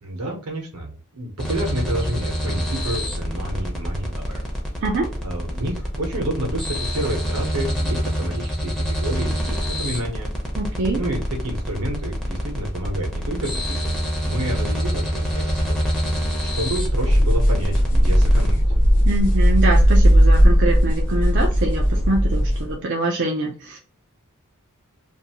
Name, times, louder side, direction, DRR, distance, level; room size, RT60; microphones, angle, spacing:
voice 1, 0.0-4.4 5.2-10.3 11.0-14.0 14.2-15.9 16.4-18.6, right 1 dB, 80° right, 2 dB, 1.1 m, -29 dB
sound 1, 1.4-18.5, equal, ahead, 0.7 m, -26 dB
voice 2, 4.8-5.1 10.6-11.0 19.0-23.8, right 2 dB, 55° right, 0 dB, 0.5 m, -24 dB
sound 2, 16.7-22.7, equal, 35° left, 0.8 m, -16 dB
2.7 x 2.6 x 2.8 m, 0.38 s
head